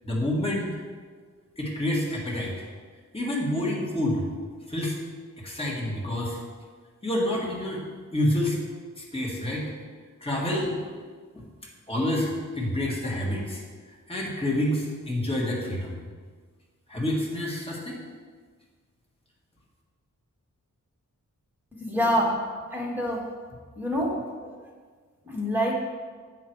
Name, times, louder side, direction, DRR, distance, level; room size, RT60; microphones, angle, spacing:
voice 1, 0.0-0.8 1.6-2.6 3.1-4.2 4.7-5.0 5.4-6.4 7.0-7.8 8.1-8.6 9.0-9.7 10.2-10.8 11.3-11.4 11.9-13.6 14.1-16.0 16.9-18.0, left 1 dB, 15° left, -3 dB, 1.7 m, -28 dB
voice 2, 21.8-22.3 22.7-23.2 23.8-24.6 25.3-25.7, equal, 5° right, -3 dB, 1.8 m, -26 dB
8.2 x 5.9 x 4.6 m, 1.6 s
wide cardioid pair, 100°, 32 cm